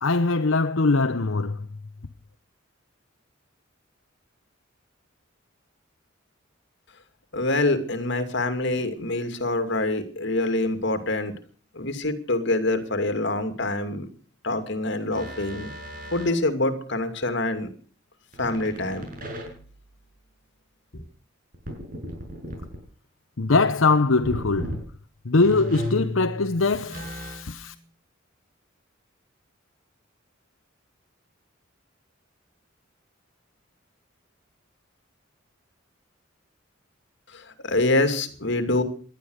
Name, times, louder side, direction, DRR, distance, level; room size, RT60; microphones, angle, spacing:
voice 1, 0.0-1.6 23.4-24.7 25.3-27.7, left 3 dB, 80° left, 0.9 m, -22 dB
voice 2, 7.3-11.3 11.7-14.1 14.4-15.7 16.1-17.7 18.4-19.1 37.3-38.8, left 2 dB, 60° left, 2.5 m, -25 dB
sound 1, 15.1-16.4 18.3-19.9 21.5-22.8 24.2-24.8 25.4-27.6, left 1 dB, 45° right, 6.1 m, -35 dB
18.5 x 12.0 x 6.5 m
head